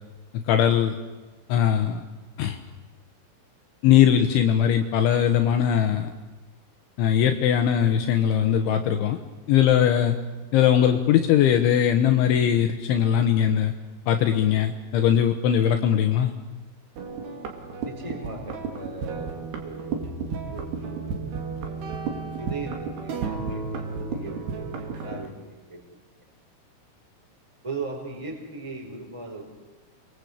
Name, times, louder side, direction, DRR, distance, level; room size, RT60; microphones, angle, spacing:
voice 1, 0.5-1.0 1.5-2.0 2.4-2.6 3.8-6.1 7.0-9.2 9.5-10.2 10.5-13.7 14.1-16.3, left 9 dB, 75° left, 6 dB, 3.5 m, -20 dB
sound 1, 17.0-25.3, right 5 dB, 60° right, 4.6 m, -33 dB
voice 2, 17.8-20.2 20.4-21.4 22.4-25.8 26.1-26.2 27.6-29.4, right 3 dB, 5° right, 1 dB, 4.8 m, -38 dB
29.0 x 23.5 x 8.4 m, 1.2 s
omnidirectional pair, 5.8 m